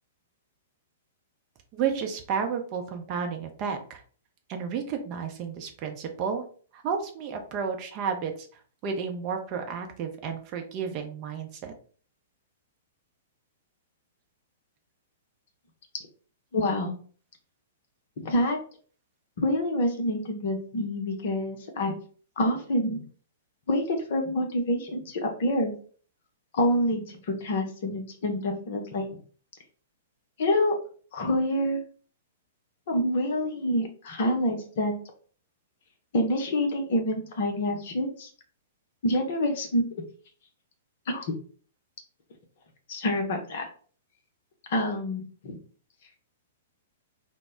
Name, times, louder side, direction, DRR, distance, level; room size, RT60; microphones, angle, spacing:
voice 1, 1.7-4.0 4.5-6.5 6.7-8.5 8.8-11.7, right 6 dB, 35° right, 4 dB, 0.5 m, -32 dB
voice 2, 16.5-17.0 18.2-18.6 19.4-21.9 22.4-23.0 23.7-25.7 26.5-29.1 30.4-30.7 31.1-31.8 32.9-34.9 36.1-38.3 39.0-39.8 41.1-41.4 42.9-43.7 44.7-45.6, left 1 dB, 50° left, 4 dB, 0.6 m, -27 dB
2.0 x 2.0 x 3.6 m, 0.43 s
figure-of-eight pair, 105°, 0 cm